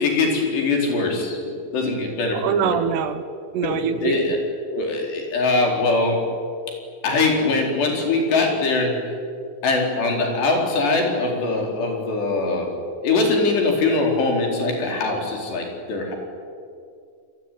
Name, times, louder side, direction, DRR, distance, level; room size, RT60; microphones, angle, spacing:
voice 1, 0.0-1.4 1.7-2.8 3.6-4.4 4.7-6.2 7.0-9.0 9.6-12.7 13.0-16.2, left 3 dB, 65° left, 1 dB, 6.5 m, -22 dB
voice 2, 2.3-3.2 3.5-4.2, right 8 dB, 75° right, 10 dB, 2.8 m, -24 dB
28.0 x 23.0 x 9.4 m, 2.3 s
omnidirectional pair, 5.4 m